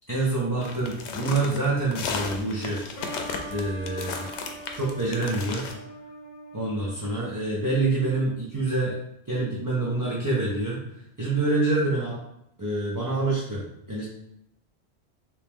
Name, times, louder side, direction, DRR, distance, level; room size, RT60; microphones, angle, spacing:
voice 1, 0.1-2.8 3.5-4.3 4.8-5.6 6.5-9.0 9.3-10.8 11.2-12.2 12.6-13.6 13.9-14.1, right 2 dB, 25° right, -6 dB, 0.6 m, -26 dB
sound 1, 0.6-5.7, left 5 dB, 85° left, 0.9 m, -34 dB
sound 2, 3.0-8.4, right 1 dB, 40° left, 0.8 m, -43 dB
3.0 x 3.0 x 3.5 m, 0.77 s
omnidirectional pair, 1.1 m